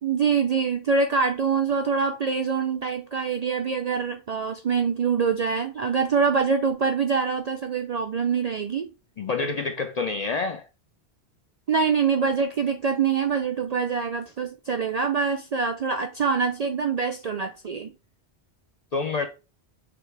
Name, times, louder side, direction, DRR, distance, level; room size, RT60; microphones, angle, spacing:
voice 1, 0.0-8.9 11.7-17.9, right 5 dB, 60° right, 0.4 m, -25 dB
voice 2, 9.2-10.6 18.9-19.3, left 4 dB, 55° left, 0.4 m, -27 dB
6.8 x 2.3 x 3.3 m
omnidirectional pair, 1.2 m